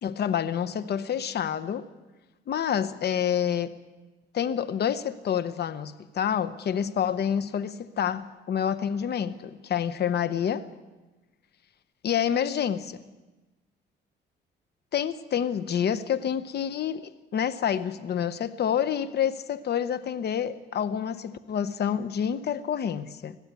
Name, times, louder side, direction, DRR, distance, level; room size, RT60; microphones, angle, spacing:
voice 1, 0.0-1.9 2.5-3.7 4.3-10.6 12.0-13.0 14.9-23.4, left 8 dB, 55° left, 0.9 m, -28 dB
21.0 x 15.0 x 8.2 m
cardioid pair, 90°, 20 cm